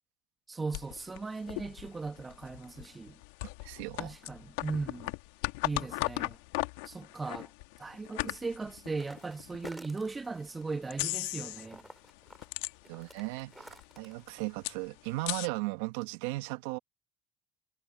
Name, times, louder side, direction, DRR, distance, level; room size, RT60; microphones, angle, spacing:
voice 1, 0.5-3.2 4.0-5.1 5.6-6.4 6.8-7.5 7.8-11.8, right 4 dB, 25° right, 1.3 m, -38 dB
sound 1, 0.7-9.8 10.3-10.4 10.9-11.8 12.1-13.2 13.5-13.6 13.7-15.5, left 23 dB, 80° left, 1.7 m, -37 dB
voice 2, 3.6-4.2 12.9-16.8, right 23 dB, 80° right, 1.2 m, -36 dB
sound 2, 9.0-10.7 11.1-14.2, right 1 dB, 5° right, 4.5 m, -51 dB
hypercardioid pair, 65°, 0 cm